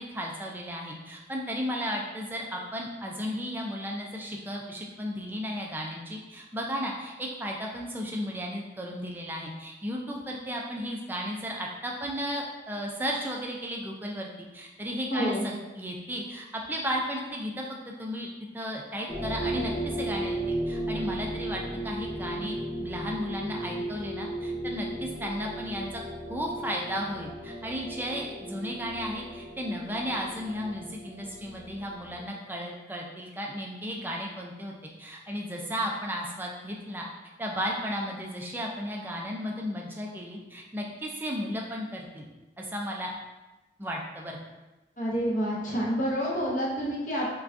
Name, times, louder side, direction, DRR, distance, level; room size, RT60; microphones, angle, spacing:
voice 1, 0.0-14.3 14.5-26.0 26.3-37.1 37.4-42.3 42.6-43.1 43.8-44.4, equal, 10° right, -1 dB, 0.4 m, -34 dB
voice 2, 15.1-15.5 45.0-47.3, equal, 45° left, -5 dB, 0.7 m, -28 dB
sound 1, 19.1-32.2, right 1 dB, 5° left, 0.8 m, -35 dB
5.7 x 2.3 x 2.5 m, 1.1 s
head